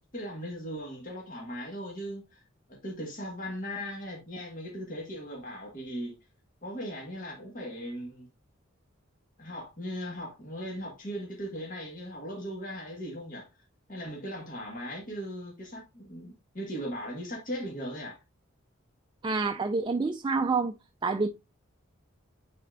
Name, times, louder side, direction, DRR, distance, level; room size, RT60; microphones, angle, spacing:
voice 1, 0.0-2.4 2.7-6.1 6.6-8.3 9.4-13.5 13.9-18.2, equal, 40° left, 1.7 m, -38 dB
voice 2, 19.2-20.7 21.0-21.3, right 4 dB, 25° right, 0.3 m, -27 dB
9.5 x 4.2 x 2.6 m
head